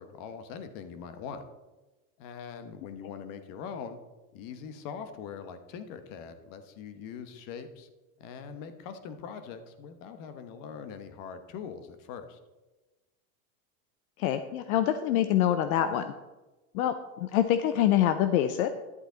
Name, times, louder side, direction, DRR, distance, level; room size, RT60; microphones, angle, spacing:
voice 1, 0.0-1.4 2.2-4.0 4.3-7.9 8.2-12.4, left 6 dB, 45° left, 9 dB, 1.2 m, -42 dB
voice 2, 14.2-16.1 16.7-18.7, left 11 dB, 70° left, 9 dB, 0.7 m, -25 dB
11.0 x 8.0 x 3.9 m, 1.2 s
supercardioid pair, 135°, 45 cm